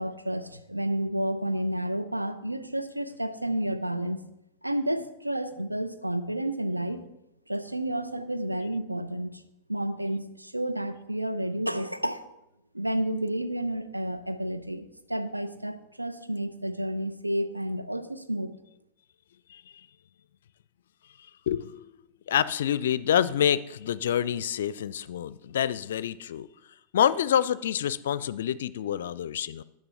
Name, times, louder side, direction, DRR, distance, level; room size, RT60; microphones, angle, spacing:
voice 1, 0.0-4.2 4.6-7.0 7.5-9.4 9.7-12.3 12.7-18.5, right 1 dB, 85° right, 9 dB, 0.7 m, -31 dB
voice 2, 21.5-21.8 22.3-26.5 26.9-29.6, left 9 dB, 60° left, 18 dB, 0.4 m, -27 dB
10.5 x 6.9 x 5.7 m, 0.86 s
figure-of-eight pair, 90°, 0 cm